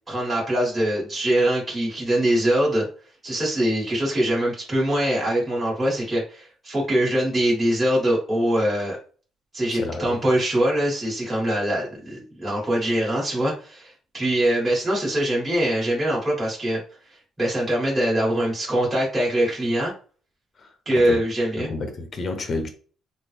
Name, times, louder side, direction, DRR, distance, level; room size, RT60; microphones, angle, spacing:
voice 1, 0.1-2.9 3.2-9.0 9.5-16.8 17.4-19.9 20.9-21.7, right 1 dB, 15° right, 1.8 m, -23 dB
voice 2, 9.7-10.2 20.6-21.2 21.6-22.7, left 3 dB, 35° left, 0.8 m, -30 dB
3.9 x 2.1 x 3.3 m
cardioid pair, 135°, 0 cm